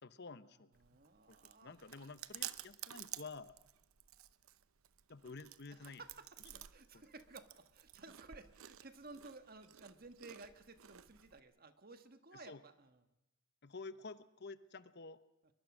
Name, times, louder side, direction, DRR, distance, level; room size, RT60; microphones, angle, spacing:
voice 1, 0.0-0.7 1.3-3.6 5.1-6.0 12.3-12.6 13.6-15.2, left 4 dB, 50° left, 14 dB, 0.9 m, -51 dB
Chewing mastication, 0.7-11.4, right 12 dB, 85° right, 0.8 m, -52 dB
voice 2, 0.8-1.8 5.7-13.0, right 3 dB, 45° right, 9 dB, 1.6 m, -56 dB
23.0 x 22.5 x 6.2 m, 0.93 s
head